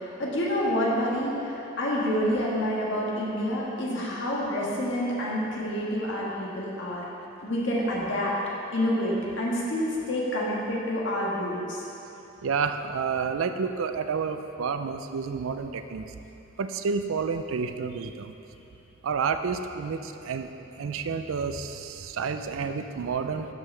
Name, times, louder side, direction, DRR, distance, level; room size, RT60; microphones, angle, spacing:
voice 1, 0.0-7.0 7.4-8.3 8.7-11.8, equal, 60° left, -5 dB, 1.5 m, -28 dB
voice 2, 12.4-16.1 16.6-18.3 19.0-20.5 20.8-23.5, right 5 dB, 80° right, 8 dB, 0.4 m, -30 dB
12.0 x 5.6 x 3.3 m, 3.0 s
head